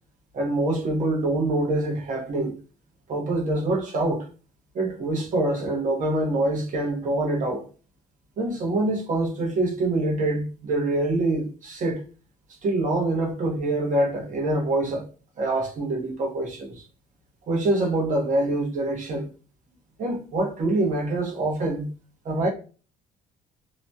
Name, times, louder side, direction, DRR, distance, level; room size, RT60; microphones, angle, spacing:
voice 1, 0.3-2.6 3.1-4.3 4.7-7.7 8.4-12.0 12.6-15.0 15.4-16.7 17.5-19.3 20.0-21.9 22.2-22.5, right 2 dB, 50° right, 1.0 m, -25 dB
2.9 x 2.2 x 2.7 m
cardioid pair, 110°, 17 cm